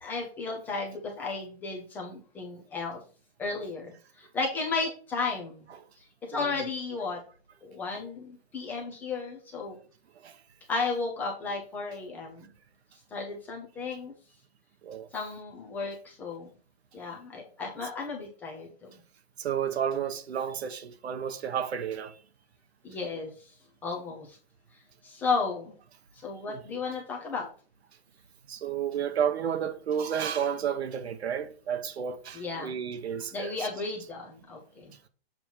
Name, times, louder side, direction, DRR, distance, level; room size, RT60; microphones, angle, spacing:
voice 1, 0.0-3.0 3.4-5.7 6.0-7.2 7.6-9.8 10.7-12.4 13.1-14.1 15.1-16.5 16.9-18.9 22.8-23.5 23.8-24.4 25.0-25.7 26.1-27.5 32.3-32.8 33.3-34.9, left 4 dB, 5° left, 0.4 m, -34 dB
voice 2, 19.4-22.1 26.5-26.6 28.5-33.5, right 8 dB, 85° right, 1.0 m, -31 dB
7.2 x 3.0 x 5.5 m
hypercardioid pair, 155°, 31 cm